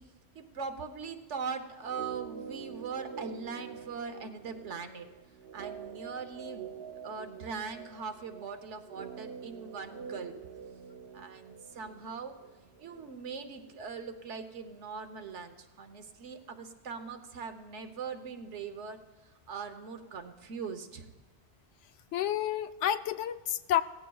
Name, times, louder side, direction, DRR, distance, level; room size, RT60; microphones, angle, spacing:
voice 1, 0.3-5.1 5.5-6.7 7.0-10.3 11.1-12.3 12.8-19.0 19.5-21.1, right 5 dB, 85° right, 7 dB, 1.3 m, -41 dB
sound 1, 1.8-14.0 14.2-14.3, right 7 dB, 65° right, 0.8 m, -46 dB
voice 2, 22.1-23.8, left 11 dB, 90° left, 12 dB, 0.9 m, -30 dB
18.0 x 15.0 x 2.3 m, 1.2 s
omnidirectional pair, 1.2 m